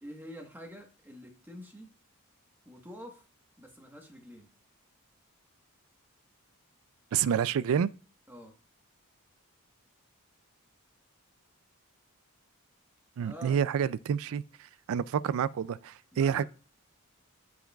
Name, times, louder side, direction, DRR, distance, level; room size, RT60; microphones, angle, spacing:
voice 1, 0.0-1.9 2.6-3.3 3.6-4.5 8.3-8.6 13.2-13.6 16.1-16.4, equal, 10° right, 1.3 m, -47 dB
voice 2, 7.1-7.9 13.2-14.4 14.9-16.4, right 8 dB, 65° right, 0.3 m, -28 dB
13.0 x 4.7 x 2.3 m
head